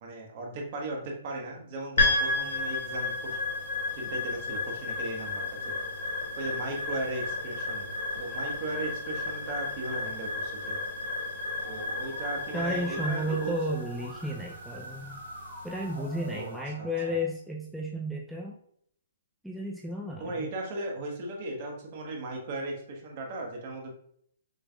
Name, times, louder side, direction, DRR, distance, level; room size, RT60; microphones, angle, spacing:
voice 1, 0.0-3.4 3.9-5.8 6.4-7.9 8.2-10.8 11.6-13.5 16.3-17.2 20.2-23.9, right 2 dB, 45° right, 0 dB, 1.4 m, -37 dB
sound 1, 2.0-16.3, left 3 dB, 75° left, 1.9 m, -32 dB
Musical instrument, 11.6-17.2, right 1 dB, 85° right, 1.6 m, -46 dB
voice 2, 12.5-15.2 15.6-18.6 19.4-20.5, equal, ahead, -3 dB, 0.5 m, -33 dB
6.2 x 3.4 x 2.4 m, 0.66 s
hypercardioid pair, 140°, 0 cm